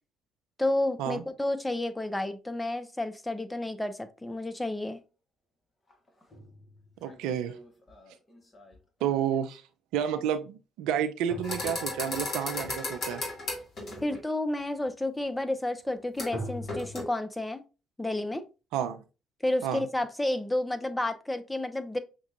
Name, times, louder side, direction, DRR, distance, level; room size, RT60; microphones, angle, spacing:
voice 1, 0.6-5.0 14.0-17.6 18.0-18.4 19.4-22.0, left 1 dB, 10° left, 9 dB, 0.7 m, -31 dB
sound 1, 4.9-5.0 5.9-9.6 11.3-12.4 16.3-17.0, equal, 30° left, 1.2 m, -43 dB
voice 2, 7.0-7.5 9.0-9.6 9.9-13.2 18.7-19.0 19.6-19.8, right 9 dB, 70° right, 9 dB, 0.4 m, -30 dB
sound 2, 11.4-14.2 16.2-16.4 16.7-17.0, left 2 dB, 50° left, 2.0 m, -34 dB
5.8 x 2.3 x 2.8 m, 0.30 s
figure-of-eight pair, 50°, 0 cm